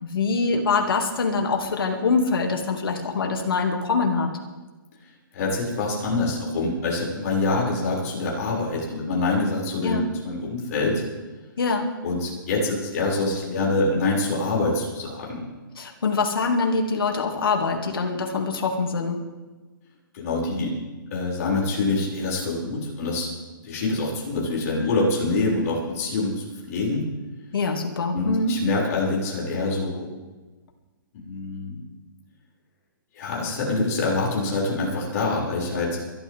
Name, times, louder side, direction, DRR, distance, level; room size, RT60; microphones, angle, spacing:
voice 1, 0.0-4.3 9.8-10.1 11.6-11.9 15.8-19.2 27.5-28.5, left 4 dB, 85° left, 3 dB, 2.7 m, -24 dB
voice 2, 5.3-11.0 12.0-15.4 20.1-20.7 21.1-23.3 23.6-27.0 28.1-30.1 31.1-31.8 33.1-36.0, left 3 dB, 45° left, -4 dB, 6.6 m, -25 dB
23.5 x 13.0 x 3.7 m, 1.2 s
hypercardioid pair, 160°, 12 cm